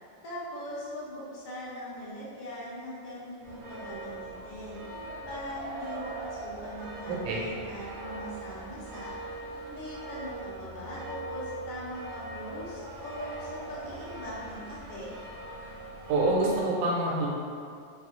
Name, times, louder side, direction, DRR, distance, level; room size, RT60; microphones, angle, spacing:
voice 1, 0.2-9.1 9.7-15.1, equal, 45° left, -8 dB, 0.8 m, -41 dB
sound 1, 3.4-16.7, right 2 dB, 60° right, 0.9 m, -41 dB
voice 2, 7.1-7.4 16.1-17.3, right 2 dB, 85° right, -4 dB, 1.1 m, -26 dB
3.1 x 2.3 x 3.0 m, 2.4 s
omnidirectional pair, 1.4 m